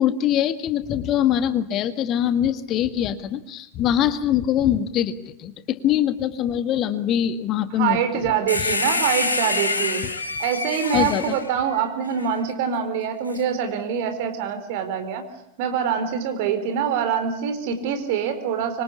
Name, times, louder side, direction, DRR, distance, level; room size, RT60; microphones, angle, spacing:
voice 1, 0.0-8.7 10.9-11.3, left 10 dB, 35° left, 11 dB, 1.8 m, -23 dB
voice 2, 7.7-10.0 10.4-15.3 15.6-18.8, right 8 dB, 50° right, 8 dB, 4.5 m, -25 dB
sound 1, 8.5-12.3 13.3-13.4, left 3 dB, 80° left, 3.8 m, -26 dB
26.0 x 25.0 x 8.5 m, 0.78 s
figure-of-eight pair, 90°, 0 cm